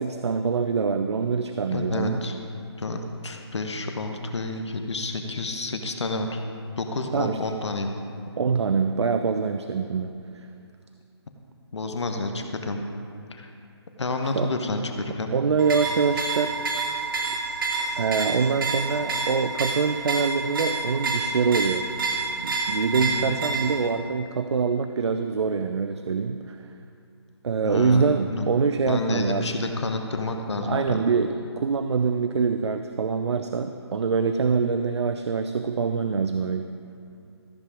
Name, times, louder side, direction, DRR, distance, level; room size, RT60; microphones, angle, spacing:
voice 1, 0.0-2.2 7.1-7.4 8.4-10.1 14.4-14.5 15.3-16.5 18.0-21.8 22.4-26.6 27.4-29.5 30.6-31.3 31.6-36.7, right 5 dB, 75° right, 8 dB, 0.5 m, -24 dB
voice 2, 1.7-2.4 2.8-6.4 6.8-7.9 11.7-12.8 13.3-13.5 14.0-15.3 23.0-23.3 27.6-28.5 28.8-31.0, left 2 dB, 80° left, 4 dB, 1.1 m, -29 dB
sound 1, 15.6-23.9, right 3 dB, 50° right, 1.6 m, -29 dB
14.0 x 7.4 x 4.9 m, 2.5 s
hypercardioid pair, 160°, 14 cm